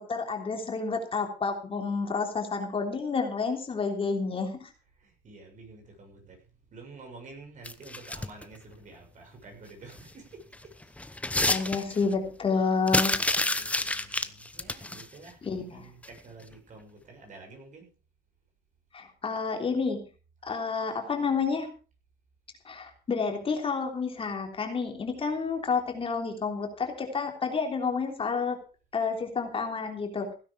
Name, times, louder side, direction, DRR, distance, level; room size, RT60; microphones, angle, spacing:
voice 1, 0.0-4.7 11.5-13.2 15.4-15.8 18.9-20.0 20.4-21.7 22.6-28.6 28.9-30.3, left 5 dB, 35° left, 4 dB, 3.3 m, -30 dB
voice 2, 5.0-6.4 6.7-10.4 10.8-10.9 11.6-12.0 13.0-17.9, right 3 dB, 50° right, 2 dB, 7.1 m, -49 dB
sound 1, 7.6-8.4 10.0-10.1 10.5-12.1 12.9-15.1 16.0-16.2 16.5-16.6, left 2 dB, 10° left, 1.0 m, -29 dB
16.5 x 10.0 x 5.2 m, 0.36 s
cardioid pair, 110°, 17 cm